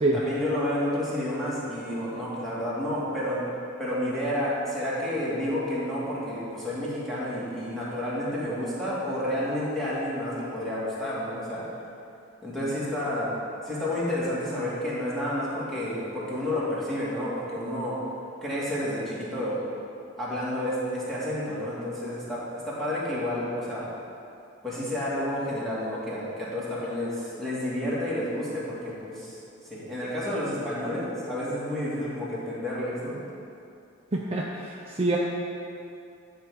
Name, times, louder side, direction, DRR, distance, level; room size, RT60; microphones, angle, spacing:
voice 1, 0.1-3.4 3.8-11.6 12.4-13.4 13.6-18.0 18.4-19.7 20.2-23.9 24.6-29.3 29.6-33.2, left 1 dB, ahead, -9 dB, 1.9 m, -30 dB
voice 2, 34.1-35.2, right 2 dB, 30° right, -2 dB, 0.5 m, -26 dB
10.5 x 3.6 x 6.2 m, 2.6 s
head